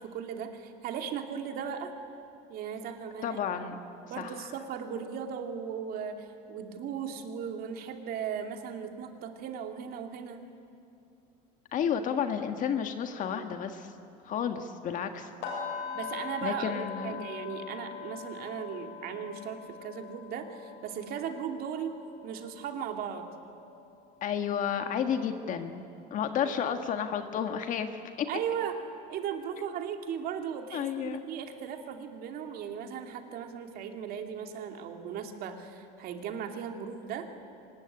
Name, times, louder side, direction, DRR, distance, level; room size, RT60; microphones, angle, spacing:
voice 1, 0.0-1.9 2.5-3.7 4.1-10.5 15.9-21.9 22.2-23.3 26.3-26.8 28.3-28.8 29.1-37.3, right 7 dB, 55° right, 5 dB, 2.6 m, -37 dB
voice 2, 3.2-3.8 4.2-4.5 11.7-13.9 14.2-15.3 16.4-17.3 24.2-25.8 26.1-28.3 30.7-31.2, left 8 dB, 45° left, 7 dB, 1.6 m, -31 dB
sound 1, 15.4-25.4 25.7-26.0 26.4-26.5, left 7 dB, 75° left, 7.6 m, -43 dB
24.5 x 20.5 x 9.9 m, 2.6 s
cardioid pair, 125°, 18 cm